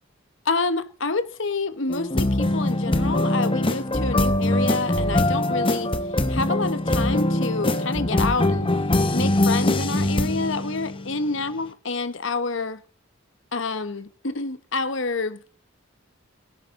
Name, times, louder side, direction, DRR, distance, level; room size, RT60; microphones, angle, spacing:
voice 1, 0.4-5.9 6.3-8.7 9.1-12.8 13.5-15.4, left 3 dB, 65° left, 1.3 m, -28 dB
sound 1, 1.9-11.5, left 1 dB, 25° left, 1.1 m, -23 dB
17.5 x 10.0 x 3.8 m
head